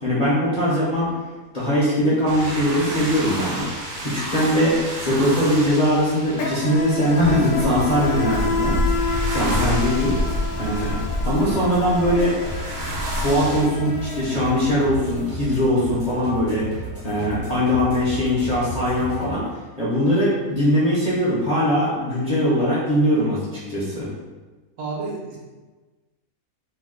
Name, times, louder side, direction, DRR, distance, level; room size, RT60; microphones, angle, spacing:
voice 1, 0.0-1.1 1.5-8.8 9.3-10.2 10.6-11.0 11.2-12.4 13.1-19.5 19.8-24.1, equal, 45° left, -9 dB, 0.5 m, -21 dB
sound 1, 2.2-13.6, left 1 dB, 65° right, 1.0 m, -29 dB
Insect, 3.7-3.9 4.1-15.1, left 3 dB, 75° left, 1.0 m, -30 dB
sound 2, 7.1-19.3, right 1 dB, 20° right, 0.4 m, -34 dB
voice 2, 24.8-25.4, right 3 dB, 80° right, -4 dB, 1.3 m, -30 dB
3.0 x 2.1 x 3.6 m, 1.2 s
omnidirectional pair, 1.6 m